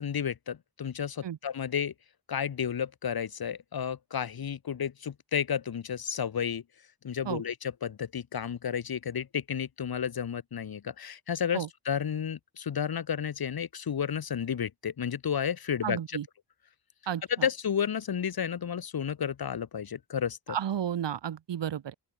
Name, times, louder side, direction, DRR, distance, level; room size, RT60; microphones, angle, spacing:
voice 1, 0.0-1.9 2.3-6.6 7.0-16.2 17.3-20.6, left 8 dB, 60° left, 2.1 m, -32 dB
voice 2, 15.8-16.2 17.1-17.2 20.5-21.9, right 9 dB, 80° right, 2.3 m, -32 dB
open air
wide cardioid pair, 145°, 42 cm